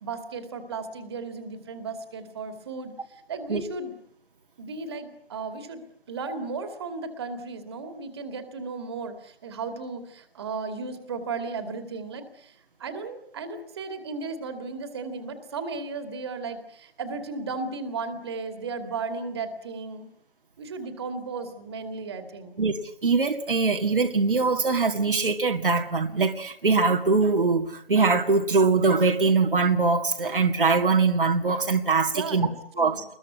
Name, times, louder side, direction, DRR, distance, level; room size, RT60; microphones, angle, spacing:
voice 1, 0.0-3.9 4.6-5.8 6.1-20.1 20.6-22.6 32.1-32.5 32.8-33.0, right 4 dB, 25° right, 8 dB, 2.6 m, -35 dB
voice 2, 23.0-32.5 32.8-33.0, right 4 dB, 55° right, 4 dB, 2.2 m, -22 dB
25.5 x 21.5 x 9.6 m, 0.68 s
figure-of-eight pair, 160°, 31 cm